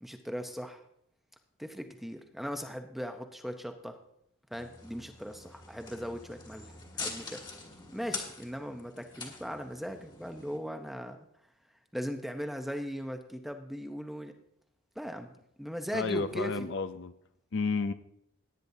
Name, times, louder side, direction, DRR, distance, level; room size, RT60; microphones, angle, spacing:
voice 1, 0.0-0.8 1.6-4.0 4.5-7.4 7.9-11.2 11.9-14.3 15.0-16.7, equal, ahead, 0.7 m, -39 dB
sound 1, 4.5-10.6, left 4 dB, 20° left, 1.6 m, -44 dB
voice 2, 15.9-17.1 17.5-17.9, left 4 dB, 55° left, 0.5 m, -31 dB
17.5 x 9.6 x 2.7 m
head